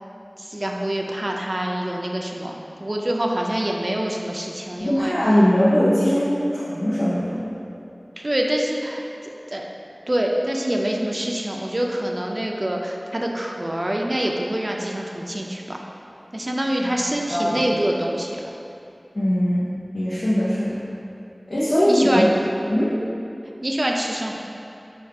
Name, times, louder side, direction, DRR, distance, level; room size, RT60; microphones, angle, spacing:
voice 1, 0.4-5.2 8.2-9.0 9.5-9.7 10.1-15.8 16.3-18.5 21.9-22.3 23.6-24.4, right 1 dB, 50° right, 0 dB, 0.4 m, -25 dB
voice 2, 4.8-7.4 16.8-17.0 17.3-17.6 19.1-20.8 21.5-22.2 22.7-22.9, equal, 85° left, -10 dB, 0.6 m, -20 dB
5.0 x 2.4 x 4.4 m, 2.7 s
wide cardioid pair, 40°, 0 cm